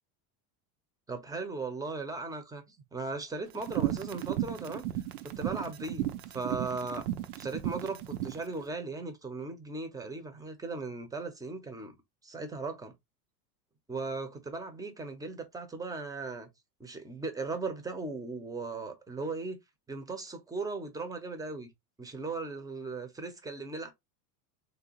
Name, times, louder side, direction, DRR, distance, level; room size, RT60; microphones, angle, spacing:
voice 1, 1.1-4.9 5.2-6.1 6.3-7.0 7.4-11.9 12.2-12.9 13.9-16.5 16.8-19.6 19.9-21.7 22.0-23.9, right 3 dB, 10° right, 0.7 m, -37 dB
sound 1, 3.6-8.4, right 13 dB, 70° right, 0.8 m, -34 dB
3.4 x 2.6 x 2.9 m
supercardioid pair, 110°, 48 cm